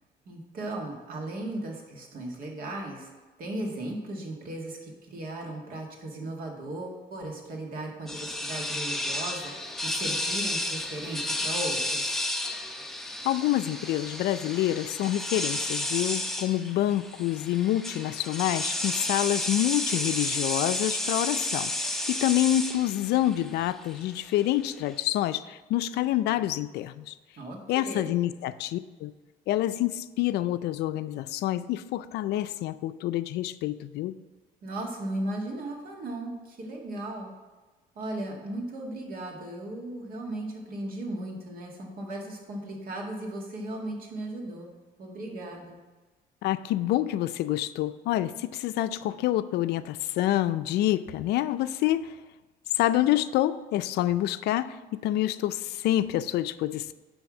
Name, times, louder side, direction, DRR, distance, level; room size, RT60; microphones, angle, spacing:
voice 1, 0.3-3.1 3.4-12.2 27.4-28.2 34.6-37.3 38.0-44.7 45.0-45.8, right 1 dB, 60° right, 0 dB, 1.9 m, -36 dB
sound 1, 8.1-24.9, left 1 dB, ahead, 0.7 m, -32 dB
voice 2, 13.2-27.1 27.7-29.1 29.5-34.2 46.4-52.1 52.7-56.9, left 14 dB, 75° left, 13 dB, 0.4 m, -27 dB
9.9 x 3.5 x 6.1 m, 1.3 s
cardioid pair, 110°, 17 cm